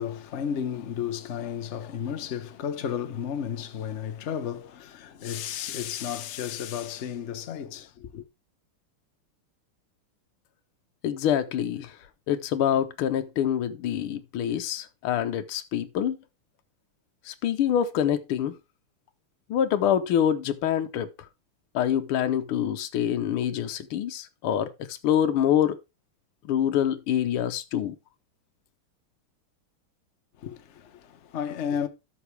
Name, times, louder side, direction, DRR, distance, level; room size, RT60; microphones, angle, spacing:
voice 1, 0.0-8.2 30.4-31.9, left 8 dB, 50° left, 0.9 m, -33 dB
voice 2, 11.0-11.9 12.3-16.2 17.3-18.6 19.5-21.1 21.7-25.8 26.5-28.0, left 9 dB, 75° left, 1.7 m, -26 dB
13.0 x 6.0 x 3.3 m
omnidirectional pair, 2.4 m